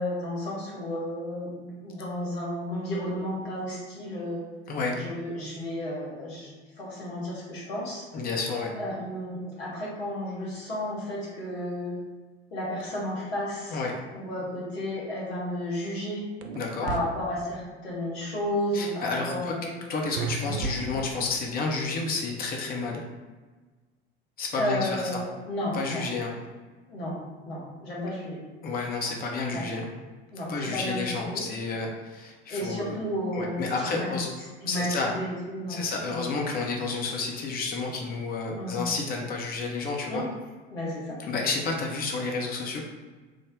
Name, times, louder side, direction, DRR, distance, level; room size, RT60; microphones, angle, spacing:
voice 1, 0.0-4.4 4.9-6.5 6.8-8.0 8.8-12.0 12.5-13.8 14.1-16.2 16.8-19.8 20.4-20.5 24.6-26.1 26.9-27.2 27.5-28.4 29.5-29.7 30.3-31.5 32.5-34.1 34.6-36.2 38.5-38.9 40.1-40.3 40.7-41.2, left 1 dB, 70° left, -5 dB, 1.3 m, -32 dB
voice 2, 4.7-5.0 8.1-8.7 13.7-13.9 16.5-16.9 18.7-23.0 24.4-25.2 25.7-26.3 28.6-29.9 30.5-33.0 33.3-34.3 34.7-35.1 35.7-40.2 41.3-42.8, left 4 dB, 30° left, 0 dB, 0.6 m, -30 dB
sound 1, 16.4-17.0 20.2-21.3, right 4 dB, 60° right, 0.5 m, -33 dB
3.3 x 2.1 x 3.5 m, 1.3 s
figure-of-eight pair, 70°, 32 cm